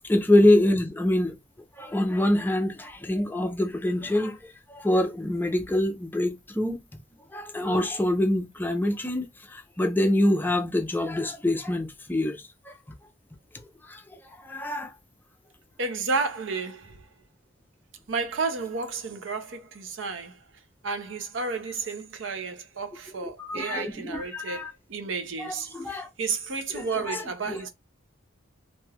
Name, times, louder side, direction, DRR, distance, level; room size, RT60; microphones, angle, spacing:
voice 1, 0.0-1.4 1.8-4.4 4.7-6.8 7.3-12.4 12.7-12.8 13.8-14.0 14.4-14.9 23.4-24.7 25.4-26.1 26.7-27.7, left 1 dB, 10° left, 0.4 m, -25 dB
voice 2, 15.8-17.1 18.1-20.4 20.8-27.7, right 4 dB, 90° right, 0.7 m, -32 dB
2.5 x 2.3 x 3.2 m
head